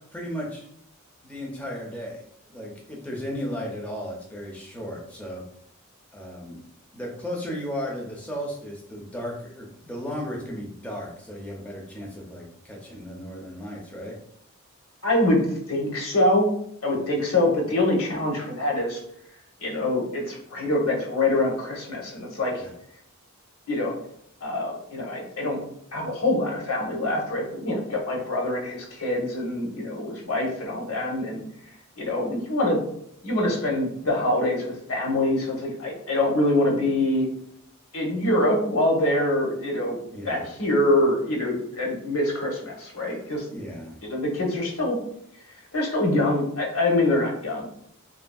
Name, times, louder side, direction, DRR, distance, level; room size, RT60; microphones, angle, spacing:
voice 1, 0.1-0.7 1.2-2.2 2.5-5.4 6.1-6.6 6.9-14.2 22.6-22.7 40.1-40.5 43.0-44.0, equal, 5° left, -2 dB, 0.4 m, -35 dB
voice 2, 15.0-15.4 15.7-16.4 16.8-19.0 19.6-22.6 23.7-23.9 24.4-25.6 25.9-31.4 32.0-32.8 33.2-37.3 37.9-40.0 40.2-43.5 44.0-45.0 45.7-47.7, left 1 dB, 75° left, -1 dB, 0.8 m, -24 dB
2.6 x 2.5 x 2.2 m, 0.71 s
head